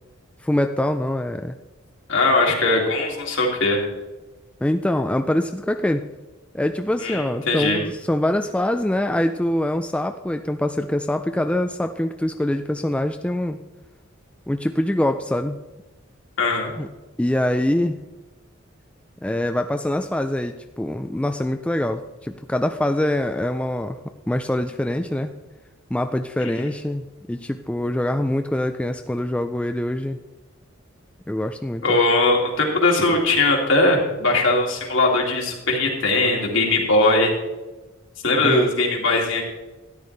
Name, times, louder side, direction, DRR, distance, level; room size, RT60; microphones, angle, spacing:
voice 1, 0.4-1.6 4.6-6.0 6.5-13.6 14.5-15.6 16.8-16.9 17.2-18.0 19.2-24.0 24.3-25.3 25.9-30.2 31.3-32.0 38.4-38.7, left 1 dB, 5° left, 6 dB, 0.3 m, -24 dB
voice 2, 2.1-3.8 7.0-7.8 16.4-16.7 26.4-26.5 31.8-37.3 38.2-39.4, left 2 dB, 65° left, -1 dB, 2.3 m, -20 dB
13.0 x 10.0 x 3.3 m, 1.1 s
head